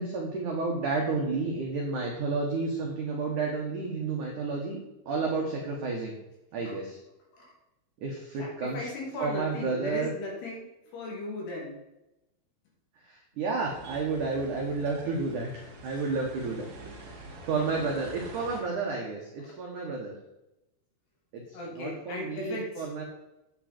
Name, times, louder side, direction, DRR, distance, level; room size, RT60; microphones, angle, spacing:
voice 1, 0.0-4.8 5.1-6.1 6.5-7.0 8.0-8.9 9.2-10.1 13.1-16.7 17.1-20.1 21.3-21.4 21.7-23.0, right 4 dB, 75° right, 0 dB, 1.8 m, -31 dB
voice 2, 8.4-10.7 10.9-11.8 21.5-22.9, left 2 dB, 60° left, -2 dB, 4.5 m, -37 dB
sound 1, 13.5-18.6, right 2 dB, 50° right, 3.7 m, -46 dB
10.0 x 8.7 x 4.4 m, 0.93 s
omnidirectional pair, 5.7 m